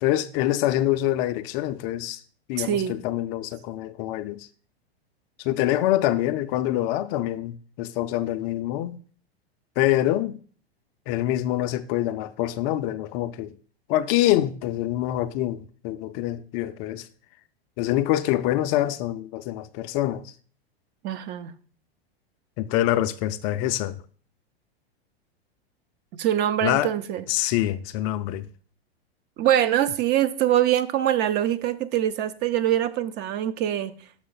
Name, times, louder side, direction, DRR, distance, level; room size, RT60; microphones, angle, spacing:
voice 1, 0.0-2.2 2.5-4.5 5.4-9.0 9.8-10.4 11.1-13.5 13.9-17.1 17.8-20.3 22.6-24.0 26.6-26.9 27.3-28.5, left 14 dB, 40° left, 0.4 m, -25 dB
voice 2, 2.6-3.0 21.0-21.5 26.1-27.2 29.4-33.9, right 11 dB, 35° right, 0.6 m, -24 dB
6.4 x 5.9 x 3.9 m
hypercardioid pair, 110°, 31 cm